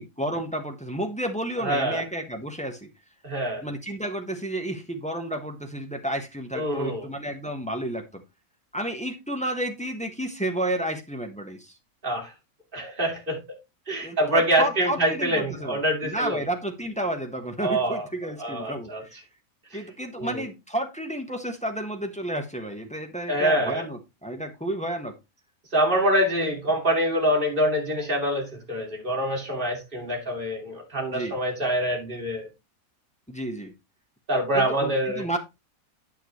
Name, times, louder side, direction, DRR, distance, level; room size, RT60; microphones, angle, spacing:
voice 1, 0.0-2.9 3.6-8.2 8.7-11.7 14.0-19.2 19.7-25.1 31.1-31.4 33.3-33.7 34.5-35.4, right 1 dB, 5° left, 1.0 m, -31 dB
voice 2, 1.6-2.0 3.2-3.6 6.5-7.1 12.0-12.3 12.7-13.4 13.9-16.4 17.6-18.1 18.4-19.0 20.2-20.4 23.3-23.8 25.7-32.5 34.3-35.2, equal, 35° right, 2.7 m, -25 dB
8.8 x 7.1 x 3.1 m
omnidirectional pair, 1.5 m